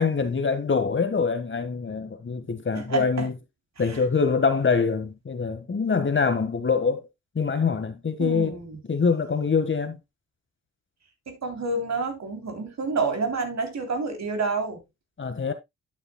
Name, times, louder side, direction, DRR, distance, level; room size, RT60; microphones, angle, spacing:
voice 1, 0.0-3.3 3.8-7.1 7.3-8.6 8.9-10.0 15.2-15.5, left 5 dB, 35° left, 1.6 m, -24 dB
voice 2, 2.7-3.3 3.9-4.0 8.2-8.8 11.3-14.8, right 3 dB, 50° right, 3.3 m, -29 dB
11.5 x 7.1 x 2.3 m
hypercardioid pair, 45°, 35 cm